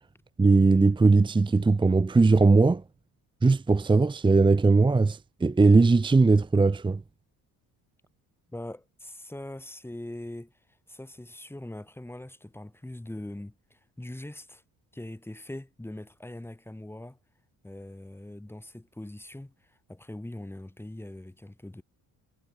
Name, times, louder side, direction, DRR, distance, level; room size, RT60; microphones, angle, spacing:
voice 1, 0.4-2.8 3.4-7.0, right 3 dB, 15° right, 0.8 m, -20 dB
voice 2, 8.5-10.5 10.9-14.6 14.9-17.2 17.6-21.8, left 1 dB, 5° left, 4.6 m, -42 dB
cardioid pair, 115°, 36 cm